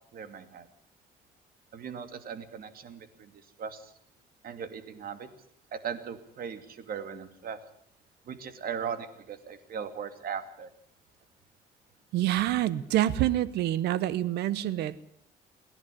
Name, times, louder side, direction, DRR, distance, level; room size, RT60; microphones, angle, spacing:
voice 1, 0.1-0.7 1.7-3.9 4.4-5.3 5.7-7.6 8.3-10.7, right 7 dB, 65° right, 10 dB, 2.6 m, -38 dB
voice 2, 12.1-15.0, right 13 dB, 85° right, 18 dB, 1.2 m, -27 dB
27.5 x 10.5 x 9.9 m, 0.68 s
cardioid pair, 85°, 17 cm